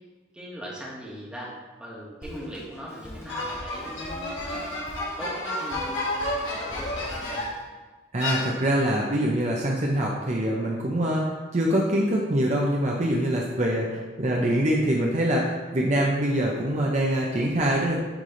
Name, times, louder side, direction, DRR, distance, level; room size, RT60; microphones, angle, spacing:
voice 1, 0.3-4.7 5.2-7.4, equal, 5° right, -6 dB, 1.4 m, -40 dB
Drum kit, 2.2-7.6, equal, 15° left, 0.9 m, -43 dB
sound 1, 3.3-7.7 8.2-9.0, left 1 dB, 85° left, 1.8 m, -31 dB
voice 2, 8.1-18.0, right 1 dB, 40° right, -2 dB, 0.7 m, -24 dB
9.7 x 3.3 x 3.8 m, 1.2 s
head